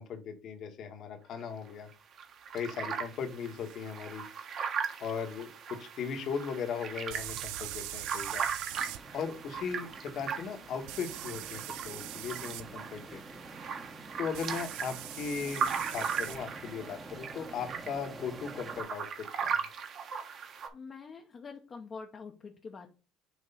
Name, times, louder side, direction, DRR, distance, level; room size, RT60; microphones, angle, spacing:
voice 1, 0.0-1.9 2.5-4.2 5.0-8.5 9.1-13.2 14.2-19.6, left 6 dB, 50° left, 5 dB, 1.3 m, -38 dB
sound 1, 1.4-1.5 1.9-20.7, right 6 dB, 45° right, 1.1 m, -38 dB
sound 2, 3.7-3.8 7.1-9.0 10.9-12.6 14.3-16.4, right 16 dB, 90° right, 0.4 m, -42 dB
sound 3, 8.7-18.8, right 2 dB, 10° right, 0.9 m, -49 dB
voice 2, 20.7-22.9, left 5 dB, 30° left, 2 dB, 0.8 m, -45 dB
6.3 x 3.1 x 5.4 m, 0.33 s
cardioid pair, 150°, 0 cm